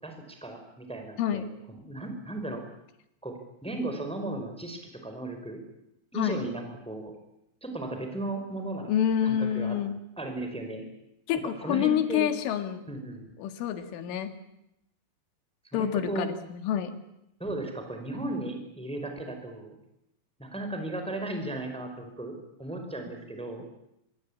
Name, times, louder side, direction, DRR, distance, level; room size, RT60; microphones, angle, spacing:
voice 1, 0.0-2.6 3.2-3.3 3.6-5.6 6.1-7.1 7.6-8.9 9.2-9.8 10.2-10.8 11.4-12.3 12.9-13.3 15.7-16.3 17.4-19.8 20.4-23.7, right 2 dB, ahead, 5 dB, 4.1 m, -36 dB
voice 2, 1.2-1.5 6.2-6.5 8.9-10.0 11.3-12.9 13.4-14.3 15.7-17.0, left 9 dB, 75° left, 9 dB, 4.3 m, -28 dB
26.0 x 23.0 x 8.7 m, 0.83 s
omnidirectional pair, 5.8 m